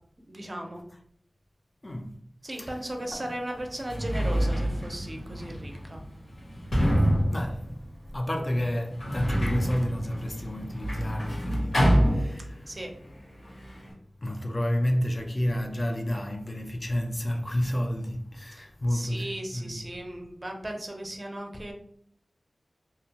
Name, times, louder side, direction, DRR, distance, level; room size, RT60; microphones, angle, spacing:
voice 1, 0.3-0.9 2.4-6.0 12.7-12.9 18.9-21.7, right 1 dB, 35° right, 0.5 m, -36 dB
voice 2, 1.8-2.2 2.6-2.8 3.1-3.3 7.3-7.8 8.1-12.7 14.2-19.8, equal, 30° left, 0.3 m, -30 dB
Sliding door, 3.0-3.1 3.7-12.8 13.1-13.9, equal, 85° left, 1.3 m, -27 dB
2.7 x 2.2 x 2.7 m
wide cardioid pair, 85°, 0 cm